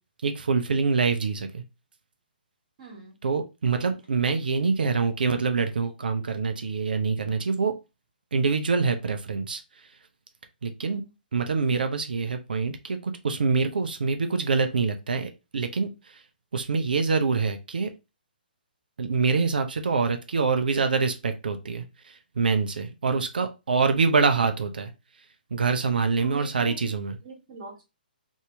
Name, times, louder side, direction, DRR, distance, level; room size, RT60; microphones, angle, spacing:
voice 1, 0.2-1.6 3.2-7.7 8.3-9.6 10.6-11.0 11.3-16.2 16.5-17.9 19.0-24.9 25.5-27.2, right 4 dB, 65° right, 7 dB, 0.6 m, -25 dB
voice 2, 2.8-3.2 3.7-3.9 10.8-11.1 26.2-26.9 27.2-27.8, right 4 dB, 45° right, 0 dB, 1.5 m, -43 dB
2.8 x 2.7 x 3.2 m, 0.27 s
figure-of-eight pair, 125°, 5 cm